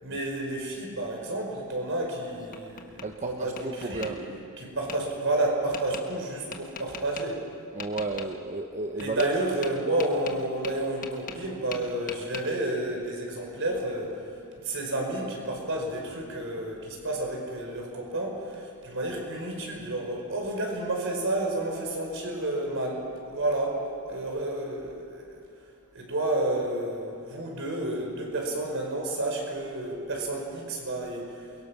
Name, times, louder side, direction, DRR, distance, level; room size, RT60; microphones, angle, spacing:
voice 1, 0.0-4.2 4.6-7.4 9.0-14.2 14.6-25.4 25.9-31.4, right 1 dB, 60° right, 1 dB, 5.5 m, -30 dB
Tap, 2.0-3.1 3.6-4.1 4.9-5.0 5.7-6.0 6.5-7.2 7.8-8.3 9.0-9.3 9.6-11.5 11.7-12.4, left 6 dB, 40° left, 1.4 m, -40 dB
voice 2, 3.0-4.2 7.7-9.3, right 3 dB, 35° right, 4 dB, 1.0 m, -33 dB
28.5 x 22.5 x 6.1 m, 2.6 s
head